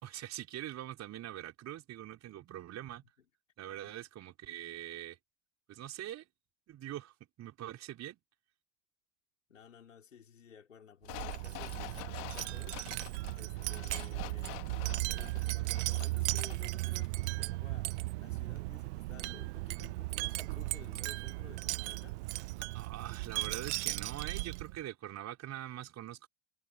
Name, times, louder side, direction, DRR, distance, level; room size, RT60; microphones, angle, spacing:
voice 1, 0.0-3.0 3.6-5.2 5.7-6.3 6.7-8.2 22.7-26.3, right 12 dB, 45° right, 5.4 m, -43 dB
voice 2, 9.5-12.8 13.4-22.2, left 7 dB, 90° left, 4.8 m, -55 dB
sound 1, 11.0-16.7 17.0-17.1, left 29 dB, 60° left, 2.2 m, -47 dB
Wind chime, 11.1-24.8, right 22 dB, 65° right, 0.5 m, -36 dB
hypercardioid pair, 75°, 37 cm